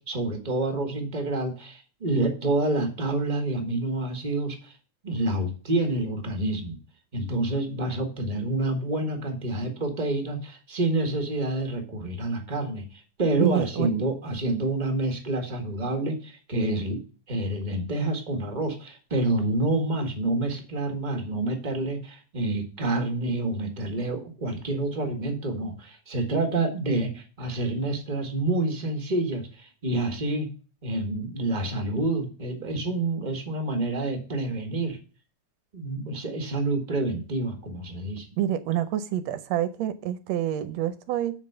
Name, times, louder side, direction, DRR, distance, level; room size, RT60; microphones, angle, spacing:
voice 1, 0.0-4.7 5.0-6.8 7.1-17.0 17.3-30.5 30.8-35.0 35.7-38.3, right 2 dB, 20° right, 1.2 m, -28 dB
voice 2, 13.4-13.9 38.4-41.3, right 11 dB, 75° right, 1.8 m, -27 dB
7.5 x 5.2 x 6.7 m
omnidirectional pair, 3.3 m